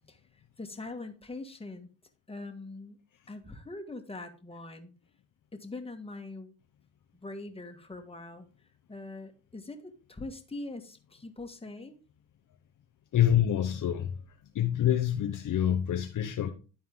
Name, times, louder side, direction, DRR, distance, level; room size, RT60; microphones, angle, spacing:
voice 1, 0.0-1.9 2.3-3.0 3.3-4.9 5.5-6.5 7.1-8.5 8.9-12.0, left 2 dB, 15° left, 1.6 m, -42 dB
voice 2, 13.1-14.1 14.5-16.5, left 10 dB, 50° left, 0.9 m, -26 dB
11.5 x 4.4 x 3.6 m
supercardioid pair, 60°, 40 cm